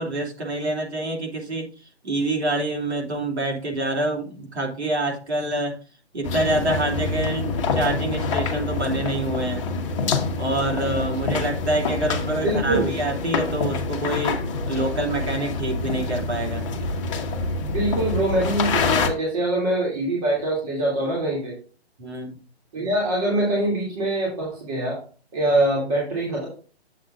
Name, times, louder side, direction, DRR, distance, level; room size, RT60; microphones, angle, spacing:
voice 1, 0.0-1.7 2.0-5.8 6.1-9.6 10.4-14.4 14.7-16.6 22.0-22.4, right 2 dB, 80° right, 1 dB, 2.8 m, -26 dB
sound 1, 6.2-19.1, left 4 dB, 30° left, 1.1 m, -26 dB
voice 2, 12.4-12.9 17.6-21.5 22.7-25.0 25.3-26.5, right 1 dB, 35° right, -4 dB, 2.8 m, -24 dB
7.8 x 7.6 x 2.5 m, 0.39 s
hypercardioid pair, 150°, 33 cm